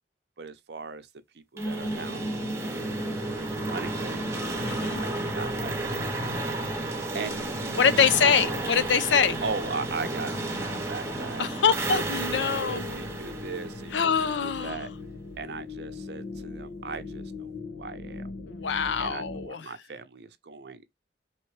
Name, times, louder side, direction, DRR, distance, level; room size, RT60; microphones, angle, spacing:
voice 1, 0.4-1.1 1.3-2.2 2.8-4.4 5.0-6.5 6.8-8.6 9.4-11.5 12.7-14.9 15.4-18.3 19.0-20.8, right 4 dB, 70° right, 0.7 m, -39 dB
sound 1, 1.6-14.6, right 1 dB, 25° left, 0.5 m, -40 dB
sound 2, 1.6-14.4, right 2 dB, 15° right, 0.9 m, -32 dB
voice 2, 4.6-5.0 7.7-9.4 11.4-13.0 13.9-14.9 18.5-19.6, left 6 dB, 85° left, 0.5 m, -24 dB
sound 3, 9.4-19.5, left 4 dB, 70° left, 0.9 m, -41 dB
4.3 x 3.1 x 3.1 m
head